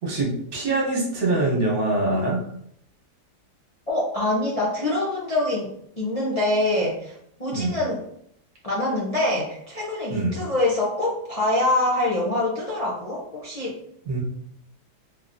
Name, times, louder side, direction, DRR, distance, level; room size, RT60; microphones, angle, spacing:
voice 1, 0.0-2.4 7.5-7.8 10.1-10.4 14.1-14.2, right 2 dB, 60° right, -4 dB, 1.6 m, -24 dB
voice 2, 3.9-5.7 6.0-8.0 8.6-13.8, left 1 dB, 45° left, -6 dB, 0.4 m, -25 dB
3.8 x 2.7 x 2.6 m, 0.69 s
omnidirectional pair, 1.8 m